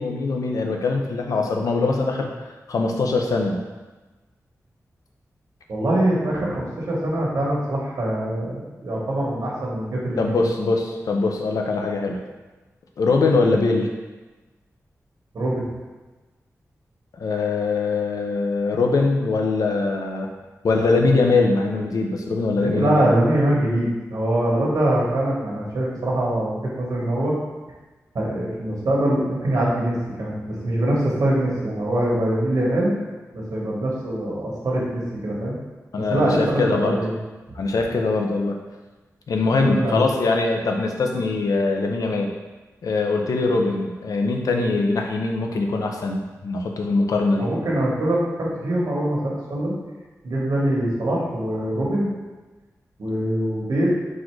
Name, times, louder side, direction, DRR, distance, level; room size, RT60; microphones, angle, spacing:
voice 1, 0.0-2.3 2.7-3.6 10.2-12.2 13.0-13.9 17.1-20.3 20.6-23.1 35.9-37.0 37.5-38.6 39.3-42.3 42.8-47.5, left 3 dB, 85° left, 2 dB, 0.5 m, -22 dB
voice 2, 5.7-10.5 15.3-15.7 22.6-27.3 28.1-32.9 33.3-35.6 36.0-37.2 37.5-37.6 39.5-40.0 47.4-49.7 50.2-52.1 53.0-53.9, right 1 dB, 80° right, -4 dB, 1.2 m, -23 dB
4.1 x 2.5 x 4.5 m, 1.2 s
wide cardioid pair, 145°, 6 cm